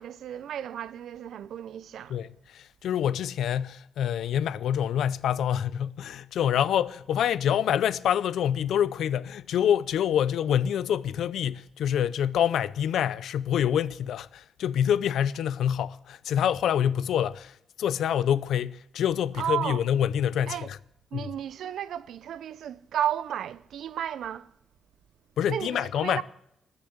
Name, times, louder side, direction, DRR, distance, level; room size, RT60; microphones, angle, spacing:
voice 1, 0.0-2.2 19.4-19.8 20.5-20.7 21.1-24.5 25.5-26.2, right 10 dB, 75° right, 0.6 m, -33 dB
voice 2, 2.1-20.8 21.1-21.3 25.4-26.2, left 9 dB, 80° left, 0.5 m, -26 dB
20.0 x 6.9 x 8.0 m
cardioid pair, 115°, 0 cm